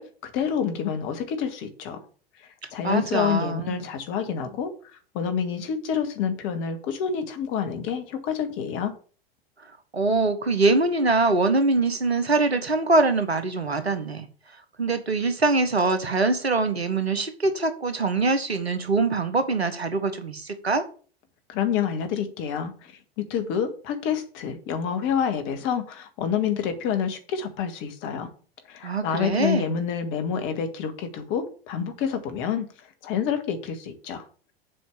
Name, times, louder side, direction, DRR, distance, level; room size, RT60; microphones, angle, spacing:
voice 1, 0.0-2.0 2.7-4.7 5.1-8.9 21.5-22.9 23.2-28.3 28.7-32.7 33.0-34.2, left 7 dB, 40° left, 1.8 m, -28 dB
voice 2, 2.8-3.8 9.9-14.3 14.8-20.8 28.8-29.7, right 3 dB, 80° right, 1.4 m, -23 dB
7.5 x 5.1 x 7.2 m
figure-of-eight pair, 85°, 31 cm